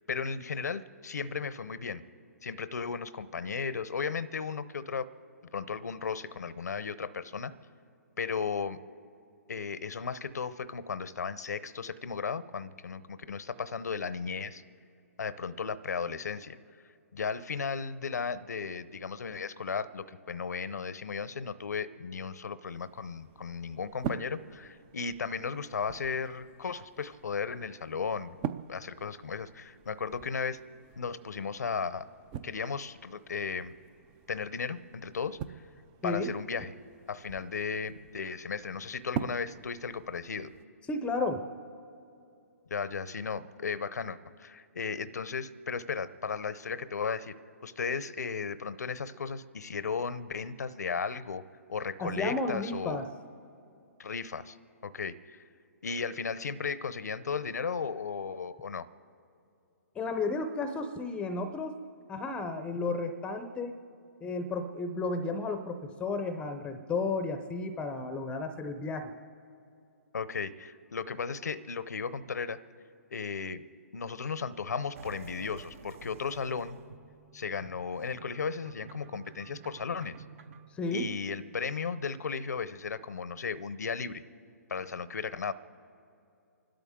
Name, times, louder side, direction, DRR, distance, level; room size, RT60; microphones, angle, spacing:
voice 1, 0.1-2.0 2.4-5.1 5.5-7.5 8.2-8.8 9.5-14.6 15.2-16.6 17.1-28.4 28.7-30.6 31.0-32.1 32.4-33.7 34.3-35.6 36.0-36.7 37.1-40.5 42.7-51.4 51.7-53.0 54.0-54.6 54.8-55.4 55.8-58.9 70.1-72.6 73.1-73.6 73.9-76.8 77.3-80.2 80.9-84.2 84.7-85.5, left 5 dB, 80° left, 15 dB, 0.7 m, -35 dB
sound 1, 22.6-40.6, right 8 dB, 30° right, 0.5 m, -44 dB
voice 2, 40.9-41.4 52.0-53.1 60.0-61.8 62.1-63.8 64.2-69.1 80.7-81.1, left 3 dB, 10° left, 8 dB, 0.7 m, -33 dB
sound 2, 74.9-80.7, right 5 dB, 55° right, 1.1 m, -50 dB
29.5 x 12.5 x 3.7 m, 2.7 s
hypercardioid pair, 140°, 9 cm